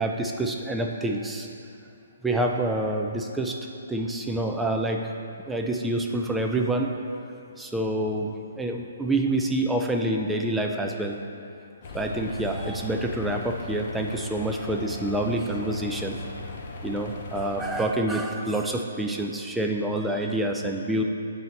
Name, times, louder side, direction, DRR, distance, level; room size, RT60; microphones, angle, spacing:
voice 1, 0.0-1.5 2.2-3.6 3.9-5.0 5.5-6.9 7.6-11.2 11.9-16.2 16.8-21.0, right 1 dB, 5° right, 1 dB, 0.4 m, -27 dB
sound 1, 11.8-17.8, left 2 dB, 45° left, 0.7 m, -37 dB
7.7 x 4.2 x 4.0 m, 2.7 s
hypercardioid pair, 160°, 0 cm